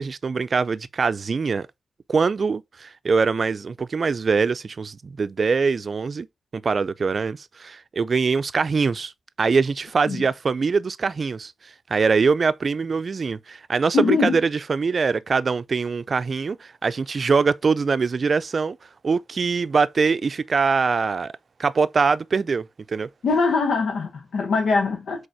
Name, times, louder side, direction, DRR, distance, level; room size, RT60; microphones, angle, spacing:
voice 1, 0.0-1.7 2.1-6.3 6.5-9.1 9.4-18.8 19.0-21.3 21.6-23.1, right 5 dB, 55° right, 0.4 m, -23 dB
voice 2, 13.9-14.4 23.2-25.3, left 4 dB, 80° left, 1.0 m, -22 dB
5.1 x 4.0 x 4.8 m
cardioid pair, 65°, 0 cm